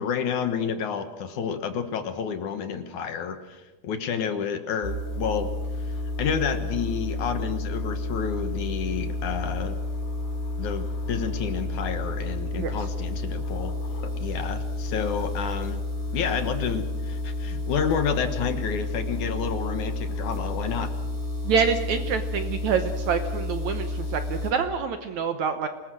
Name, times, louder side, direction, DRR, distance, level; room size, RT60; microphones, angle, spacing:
voice 1, 0.0-9.8 10.6-13.7 14.0-15.8 16.1-20.9, left 7 dB, 65° left, 9 dB, 2.4 m, -30 dB
sound 1, 4.8-24.5, left 2 dB, 85° left, 6.6 m, -31 dB
voice 2, 21.4-25.7, right 6 dB, 65° right, 9 dB, 2.0 m, -26 dB
27.0 x 19.5 x 6.4 m, 1.0 s
omnidirectional pair, 4.2 m